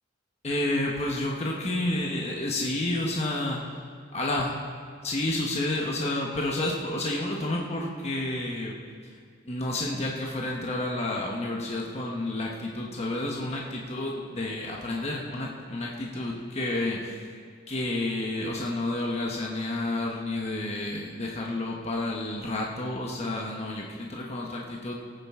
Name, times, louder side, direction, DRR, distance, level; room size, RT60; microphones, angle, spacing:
voice 1, 0.4-3.6 4.1-4.5 5.0-8.7 9.5-17.2 17.7-24.9, left 1 dB, 35° left, -1 dB, 1.1 m, -30 dB
18.0 x 9.0 x 3.6 m, 2.1 s
head